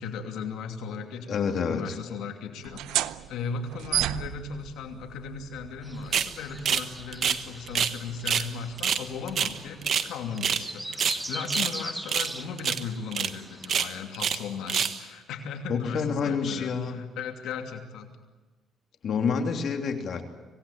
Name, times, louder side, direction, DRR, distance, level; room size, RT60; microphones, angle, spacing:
voice 1, 0.0-18.2, left 6 dB, 85° left, 4 dB, 2.8 m, -37 dB
voice 2, 1.3-1.8 15.7-17.0 19.0-20.2, left 6 dB, 55° left, 4 dB, 3.1 m, -28 dB
sound 1, 2.6-9.9, right 13 dB, 90° right, 0.7 m, -35 dB
sound 2, 5.8-13.8, right 1 dB, 5° right, 0.9 m, -41 dB
sound 3, 6.1-6.3 6.6-6.9 7.1-8.0 8.2-8.5 8.8-10.1 10.4-10.7 10.9-11.7 12.1-12.3 12.6-12.8 13.1-13.3 13.6-14.4 14.7-15.0, right 8 dB, 55° right, 1.3 m, -26 dB
25.5 x 18.5 x 8.9 m, 1.3 s
cardioid pair, 115°, 0 cm